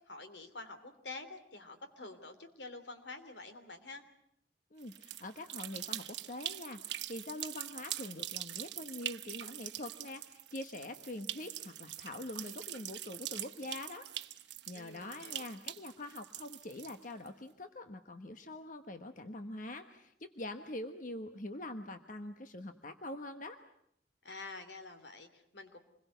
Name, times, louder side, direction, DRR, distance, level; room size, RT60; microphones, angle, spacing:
voice 1, 0.1-4.0 14.7-15.5 24.2-25.8, left 3 dB, 75° left, 8 dB, 3.1 m, -48 dB
voice 2, 4.7-14.4 14.7-23.6, left 1 dB, 45° left, 7 dB, 1.2 m, -44 dB
sound 1, 4.8-17.3, right 13 dB, 75° right, 1.0 m, -43 dB
27.0 x 21.5 x 8.0 m, 0.73 s
head